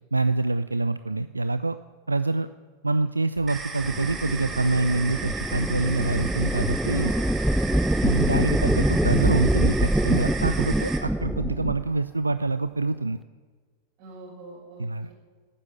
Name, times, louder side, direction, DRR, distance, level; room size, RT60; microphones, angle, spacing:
voice 1, 0.1-1.8 2.1-2.5 2.8-7.1 8.0-13.2 14.8-15.1, right 2 dB, 80° right, 13 dB, 0.3 m, -25 dB
sound 1, 3.4-3.5 3.8-3.9 4.2-4.3 4.6-4.8 5.1-5.2 5.5-5.6 5.9-6.1 6.4-6.9 7.2-7.3 7.6-7.8 8.1-8.2 8.5-8.6 8.9-9.1 9.4-9.5 9.8-10.0, left 4 dB, 55° left, 3.7 m, -43 dB
sound 2, 3.5-11.0, right 5 dB, 20° right, 2.0 m, -35 dB
sound 3, 3.8-11.9, right 1 dB, 5° right, 0.4 m, -25 dB
voice 2, 6.9-7.7 14.0-15.1, right 2 dB, 45° right, -1 dB, 6.0 m, -44 dB
12.5 x 9.6 x 9.4 m, 1.5 s
figure-of-eight pair, 90°, 0 cm